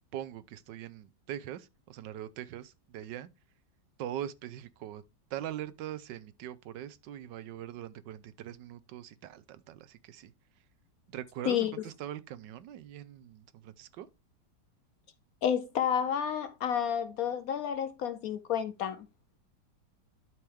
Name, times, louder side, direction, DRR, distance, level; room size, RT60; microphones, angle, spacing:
voice 1, 0.1-3.3 4.0-5.0 5.3-10.3 11.1-14.1, right 11 dB, 80° right, 1.3 m, -42 dB
voice 2, 15.4-19.1, left 8 dB, 70° left, 0.9 m, -30 dB
12.0 x 4.6 x 3.3 m
omnidirectional pair, 1.9 m